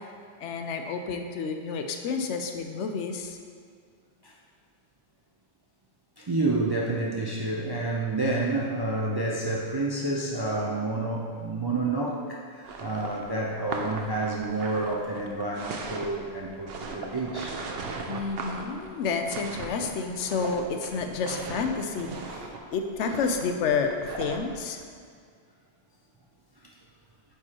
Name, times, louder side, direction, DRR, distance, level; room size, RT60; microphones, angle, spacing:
voice 1, 0.4-3.4 18.1-23.9 24.2-24.8, left 5 dB, 85° left, 5 dB, 0.9 m, -30 dB
voice 2, 6.2-17.6 26.6-26.7, right 2 dB, 40° right, -3 dB, 0.3 m, -29 dB
sound 1, 12.6-24.5, right 4 dB, 65° right, 0.8 m, -38 dB
8.7 x 4.8 x 2.9 m, 2.1 s
omnidirectional pair, 1.2 m